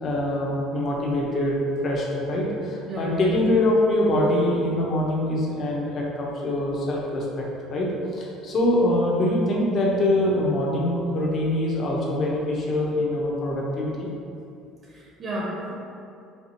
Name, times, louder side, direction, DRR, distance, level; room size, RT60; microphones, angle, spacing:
voice 1, 0.0-14.1, left 1 dB, 40° left, -3 dB, 0.7 m, -24 dB
voice 2, 2.9-3.5 14.9-15.7, right 1 dB, 40° right, -4 dB, 0.6 m, -31 dB
4.4 x 2.4 x 2.7 m, 2.5 s
cardioid pair, 125°, 0 cm